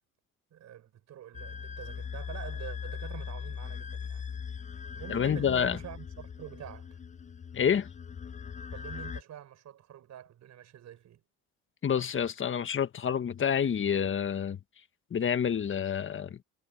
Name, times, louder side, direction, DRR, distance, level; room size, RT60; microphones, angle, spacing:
voice 1, 0.5-4.3 4.9-7.0 8.7-11.2, right 11 dB, 60° right, 5.5 m, -46 dB
sound 1, 1.3-9.2, left 6 dB, 25° left, 0.6 m, -40 dB
voice 2, 5.1-5.8 7.5-7.9 11.8-14.6 15.1-16.4, left 8 dB, 40° left, 1.6 m, -28 dB
cardioid pair, 90°, 31 cm